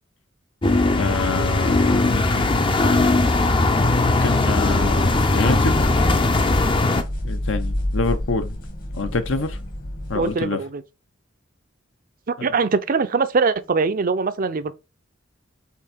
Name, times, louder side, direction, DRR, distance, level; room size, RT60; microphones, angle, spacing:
sound 1, 0.6-7.0, left 2 dB, 25° left, 0.6 m, -19 dB
voice 1, 1.0-2.5 4.0-5.9 7.2-8.6 8.9-9.6 10.1-10.6 12.4-12.5, left 3 dB, 70° left, 0.9 m, -26 dB
sound 2, 4.4-10.4, left 1 dB, 45° left, 1.4 m, -30 dB
voice 2, 10.1-10.8 12.3-14.7, right 4 dB, 45° right, 0.5 m, -22 dB
5.6 x 3.7 x 5.0 m
head